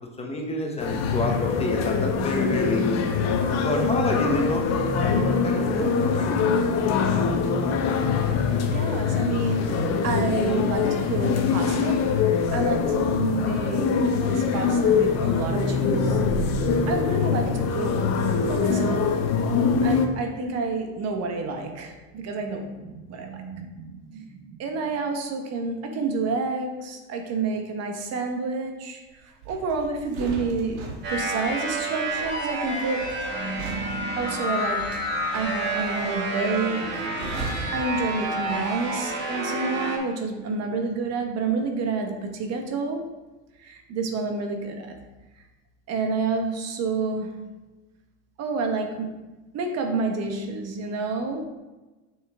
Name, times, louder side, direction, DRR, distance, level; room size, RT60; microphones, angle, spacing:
voice 1, 0.2-3.0 3.6-6.6, left 2 dB, 15° left, 1 dB, 1.0 m, -28 dB
sound 1, 0.8-20.1, left 5 dB, 45° left, 1.0 m, -23 dB
voice 2, 8.7-16.2 16.5-18.1 18.5-19.2 19.8-30.8 31.1-33.2 34.2-34.9 35.3-37.1 37.7-43.1 43.6-44.9 45.9-47.4 48.4-49.1 49.5-51.4, right 4 dB, 45° right, 4 dB, 1.3 m, -29 dB
sound 2, 29.4-38.8 39.1-39.3, right 2 dB, 75° right, 1.8 m, -39 dB
sound 3, 31.0-40.0, right 1 dB, 30° right, 2.0 m, -29 dB
6.7 x 6.2 x 3.6 m, 1.1 s
supercardioid pair, 115°, 36 cm